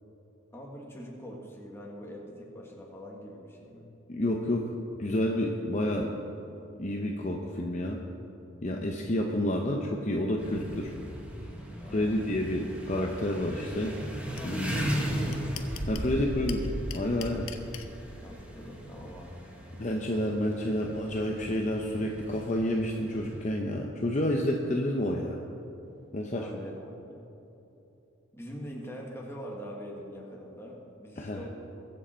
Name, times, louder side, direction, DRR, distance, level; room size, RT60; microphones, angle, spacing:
voice 1, 0.5-3.9 11.8-12.3 14.3-15.4 16.1-16.4 18.2-19.4 26.3-27.2 28.3-31.5, equal, 10° left, -2 dB, 1.8 m, -43 dB
voice 2, 4.1-6.1 6.8-8.0 8.6-10.9 11.9-13.9 14.4-14.7 15.9-16.7 16.9-17.5 19.8-25.4 26.1-26.5 31.2-31.4, left 1 dB, 35° left, 1 dB, 0.8 m, -29 dB
sound 1, 10.4-23.5, equal, 5° right, 1.5 m, -37 dB
sound 2, 14.4-14.5 14.8-14.9 15.1-16.1 16.5-17.9, left 11 dB, 90° left, 0.8 m, -41 dB
22.0 x 7.6 x 4.4 m, 3.0 s
head